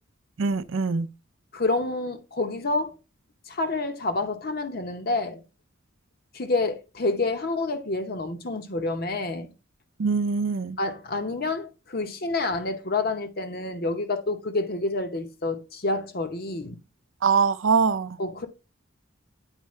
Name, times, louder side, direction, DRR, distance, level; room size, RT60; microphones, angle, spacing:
voice 1, 0.4-1.1 10.0-10.8 17.2-18.2, right 5 dB, 75° right, 0.5 m, -23 dB
voice 2, 1.5-3.0 3.5-5.4 6.3-9.5 10.8-16.8 18.2-18.5, left 2 dB, 50° left, 0.8 m, -28 dB
9.0 x 4.6 x 3.1 m
head